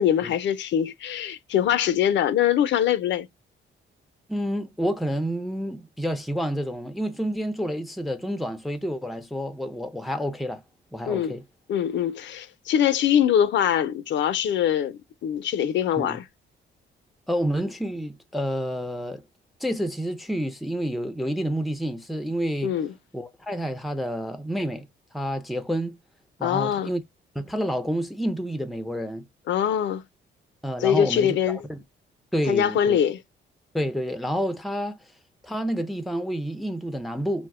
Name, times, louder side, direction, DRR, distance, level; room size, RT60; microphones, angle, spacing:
voice 1, 0.0-3.3 11.1-11.3 11.7-16.2 22.6-22.9 26.4-26.9 29.5-30.0 30.8-31.6 32.5-33.2, left 9 dB, 65° left, 0.5 m, -23 dB
voice 2, 4.3-10.6 10.9-11.4 16.0-16.2 17.3-19.2 19.6-22.7 23.1-24.9 25.1-26.0 26.4-27.0 27.3-29.2 30.6-31.4 31.7-31.8 32.3-33.0 33.7-35.0 35.4-37.5, equal, ahead, 0.5 m, -29 dB
2.6 x 2.1 x 3.5 m
cardioid pair, 90°, 20 cm